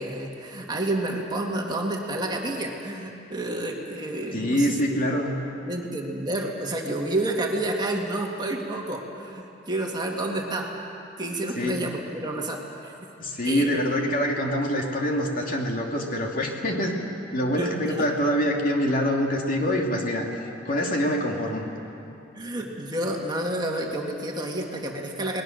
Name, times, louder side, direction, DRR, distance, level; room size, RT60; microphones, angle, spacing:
voice 1, 0.0-5.0 5.7-10.7 11.2-12.9 13.4-13.9 17.6-18.1 22.4-25.4, right 1 dB, 25° right, 0 dB, 2.1 m, -30 dB
voice 2, 4.3-5.3 11.6-11.8 13.2-17.0 17.3-20.3 20.6-21.7, equal, 45° left, 0 dB, 2.7 m, -25 dB
29.5 x 20.5 x 6.7 m, 2.8 s
head